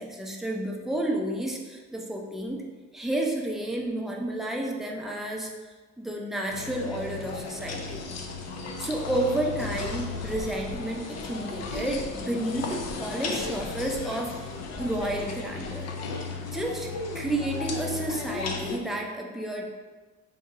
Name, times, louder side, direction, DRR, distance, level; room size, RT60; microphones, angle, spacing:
voice 1, 0.0-2.6 2.9-8.0 8.8-14.5 14.8-15.9 16.5-16.9 17.1-19.6, right 1 dB, ahead, -1 dB, 0.6 m, -31 dB
sound 1, 6.5-18.8, left 4 dB, 60° left, 0.6 m, -35 dB
3.5 x 2.8 x 4.2 m, 1.3 s
cardioid pair, 90°, 30 cm